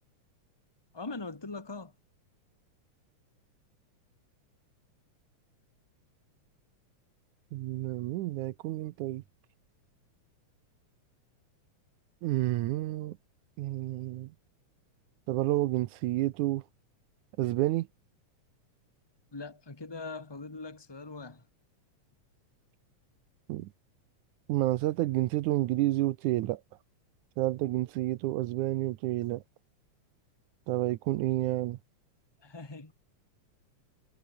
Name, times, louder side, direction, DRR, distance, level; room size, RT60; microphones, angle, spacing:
voice 1, 0.9-1.9 19.3-21.4 32.4-32.9, left 3 dB, 30° left, 0.4 m, -41 dB
voice 2, 7.5-9.2 12.2-13.2 13.6-14.3 15.3-16.6 17.4-17.9 23.5-23.7 24.5-26.6 27.4-29.4 30.7-31.8, right 16 dB, 85° right, 2.2 m, -29 dB
omnidirectional pair, 3.5 m